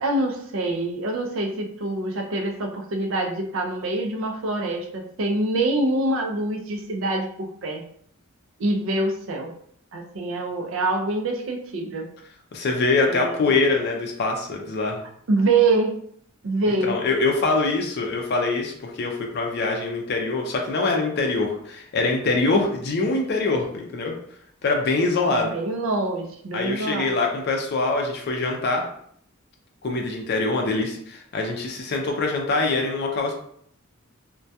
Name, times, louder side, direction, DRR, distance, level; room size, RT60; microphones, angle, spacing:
voice 1, 0.0-7.8 8.6-9.5 9.9-12.1 13.1-13.5 15.3-16.0 16.4-17.0 25.3-27.1, right 2 dB, 65° right, 3 dB, 0.4 m, -25 dB
voice 2, 12.5-15.0 16.8-24.1 24.6-25.5 26.5-28.8 29.8-33.3, left 3 dB, 50° left, 1 dB, 0.4 m, -24 dB
2.2 x 2.2 x 2.7 m, 0.65 s
head